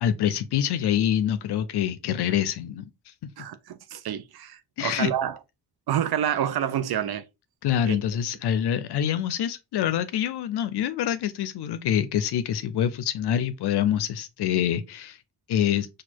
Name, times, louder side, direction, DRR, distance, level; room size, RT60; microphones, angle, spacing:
voice 1, 0.0-2.9 4.8-5.1 7.6-15.2 15.5-15.9, left 10 dB, 85° left, 0.5 m, -25 dB
voice 2, 3.4-5.4 5.9-7.2 7.8-8.0, right 10 dB, 75° right, 0.5 m, -28 dB
4.2 x 2.4 x 4.4 m
cardioid pair, 50°, 38 cm